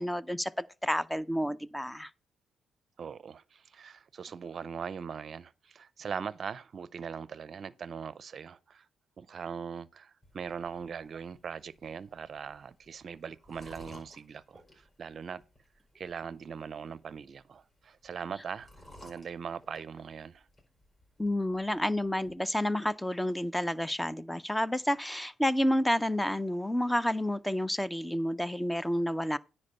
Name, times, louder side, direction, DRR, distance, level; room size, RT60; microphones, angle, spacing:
voice 1, 0.0-2.1 21.2-29.4, left 1 dB, 5° left, 0.5 m, -30 dB
voice 2, 3.0-8.9 9.2-15.4 15.9-18.7 19.0-20.5, right 6 dB, 50° right, 0.5 m, -41 dB
sound 1, 10.2-22.3, left 1 dB, 25° left, 4.7 m, -58 dB
9.9 x 4.3 x 5.5 m
cardioid pair, 90°, 0 cm